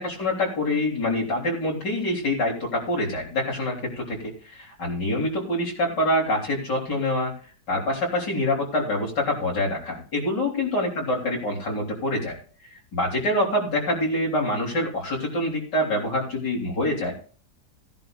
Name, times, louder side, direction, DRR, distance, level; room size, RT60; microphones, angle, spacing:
voice 1, 0.0-7.3 7.7-12.4 12.9-17.1, left 1 dB, 70° left, -2 dB, 4.1 m, -25 dB
17.5 x 10.5 x 2.5 m, 0.41 s
omnidirectional pair, 1.9 m